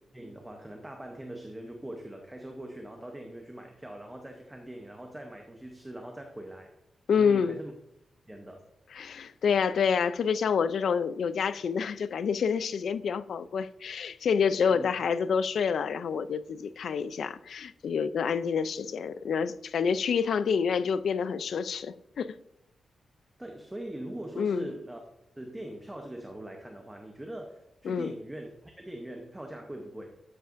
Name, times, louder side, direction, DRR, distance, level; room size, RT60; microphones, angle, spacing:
voice 1, 0.1-6.7 7.2-7.7 8.3-8.7 14.7-14.9 23.4-25.0 25.4-30.1, right 1 dB, 10° right, 0.8 m, -42 dB
voice 2, 7.1-7.6 8.9-22.3 24.4-24.7 27.8-28.1, left 6 dB, 65° left, 0.4 m, -28 dB
12.5 x 7.9 x 2.5 m
wide cardioid pair, 170°, 0 cm